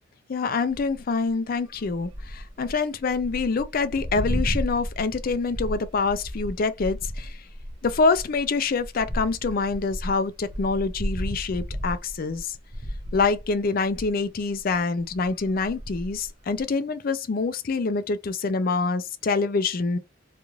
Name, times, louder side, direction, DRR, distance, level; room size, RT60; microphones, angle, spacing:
voice 1, 0.3-7.4 7.8-12.5 13.1-20.0, left 4 dB, 50° left, 0.4 m, -26 dB
sound 1, 0.7-1.0 1.7-14.1 14.5-14.7 15.0-16.6, equal, 20° right, 0.5 m, -34 dB
3.0 x 2.5 x 2.3 m
head